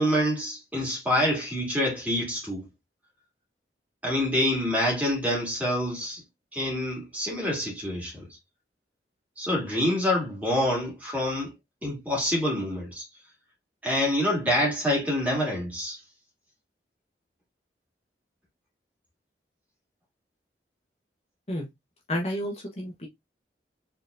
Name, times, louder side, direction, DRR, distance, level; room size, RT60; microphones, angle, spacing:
voice 1, 0.0-2.7 4.0-6.2 6.5-8.3 9.4-11.5 11.8-13.0 13.8-16.0, left 1 dB, 10° right, 2.3 m, -26 dB
voice 2, 22.1-23.1, equal, 35° left, 1.1 m, -31 dB
4.6 x 3.9 x 2.5 m
head